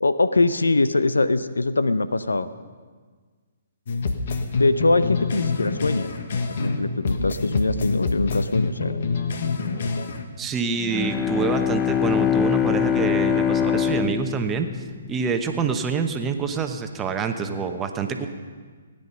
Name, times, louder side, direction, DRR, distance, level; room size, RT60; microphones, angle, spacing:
voice 1, 0.0-2.5 4.5-6.1 6.6-9.0, left 2 dB, 85° left, 13 dB, 0.6 m, -22 dB
sound 1, 3.9-6.8 7.1-10.3, left 4 dB, 60° left, 1.3 m, -26 dB
voice 2, 10.4-14.7 15.1-18.3, right 5 dB, 15° right, 6 dB, 1.0 m, -26 dB
Bowed string instrument, 10.8-15.6, left 8 dB, 20° left, 0.6 m, -23 dB
17.0 x 10.0 x 5.6 m, 1.5 s
figure-of-eight pair, 135°, 0 cm